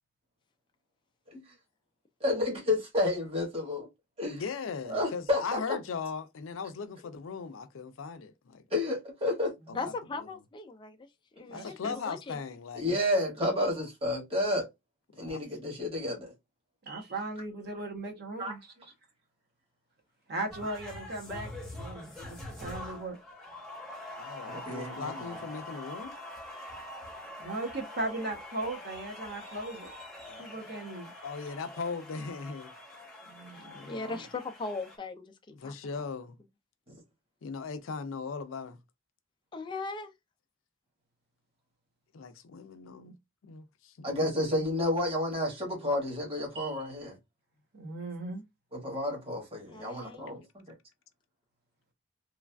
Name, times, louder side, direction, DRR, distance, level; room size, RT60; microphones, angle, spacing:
voice 1, 2.2-3.9 4.2-4.4 4.9-5.8 8.7-9.5 11.4-11.5 12.7-14.7 15.2-16.3 18.4-18.5 24.5-25.4 36.9-37.0 44.0-47.2 48.7-50.6, left 1 dB, 30° right, 1.3 m, -31 dB
voice 2, 4.3-8.6 9.8-9.9 11.5-13.0 15.1-15.4 24.2-26.2 30.3-30.5 31.2-32.7 33.7-34.1 35.5-36.4 37.4-38.8 42.1-43.2 43.4-44.1, left 5 dB, 90° left, 0.4 m, -39 dB
voice 3, 9.7-11.1 11.4-12.4 13.4-13.9 33.5-35.7 39.5-40.1 49.7-50.3, left 3 dB, 25° left, 0.4 m, -39 dB
voice 4, 11.5-11.9 16.9-18.6 20.3-23.2 27.4-29.9 30.4-31.1 33.2-33.8 34.1-34.2 46.5-46.8 47.7-48.4, right 2 dB, 55° right, 0.9 m, -38 dB
sound 1, 20.5-35.0, left 1 dB, ahead, 0.8 m, -44 dB
3.1 x 2.4 x 2.2 m
head